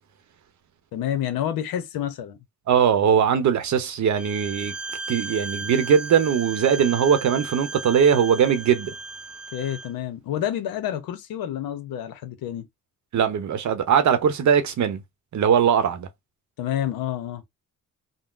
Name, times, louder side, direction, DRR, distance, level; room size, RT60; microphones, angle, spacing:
voice 1, 0.9-2.4 9.5-12.7 16.6-17.4, left 10 dB, 85° left, 0.8 m, -29 dB
voice 2, 2.7-4.7 5.1-8.9 13.1-15.0 15.3-16.1, right 7 dB, 55° right, 0.7 m, -20 dB
Bowed string instrument, 4.2-9.9, right 3 dB, 5° right, 0.6 m, -35 dB
3.7 x 2.0 x 2.4 m
cardioid pair, 95°, 34 cm